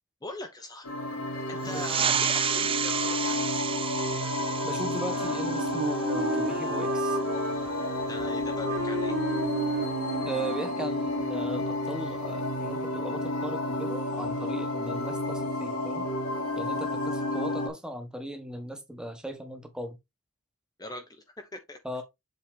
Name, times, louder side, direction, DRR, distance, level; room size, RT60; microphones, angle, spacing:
voice 1, 0.2-0.9 1.5-3.5 8.1-9.2 20.8-22.0, left 1 dB, 20° left, 0.9 m, -41 dB
sound 1, 0.8-17.7, left 1 dB, 85° left, 2.5 m, -31 dB
voice 2, 1.6-2.1 4.6-7.2 10.3-16.1 16.6-20.0 21.8-22.0, right 1 dB, 5° right, 1.3 m, -38 dB
sound 2, 1.6-6.8, right 8 dB, 25° right, 0.4 m, -31 dB
Wind instrument woodwind instrument, 5.0-10.9, right 2 dB, 60° right, 1.7 m, -33 dB
7.6 x 4.2 x 3.4 m
head